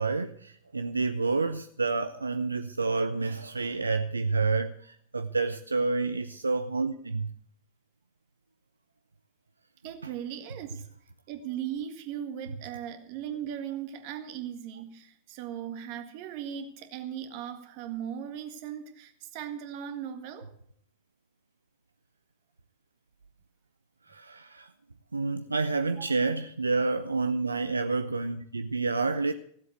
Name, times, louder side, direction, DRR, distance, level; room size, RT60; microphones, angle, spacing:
voice 1, 0.0-7.3 24.1-24.7 25.1-29.3, right 3 dB, 80° right, 0.6 m, -29 dB
voice 2, 9.8-10.9 11.3-20.5 26.0-26.1, right 9 dB, 45° right, 1.8 m, -38 dB
16.0 x 7.8 x 7.9 m
figure-of-eight pair, 90°, 0 cm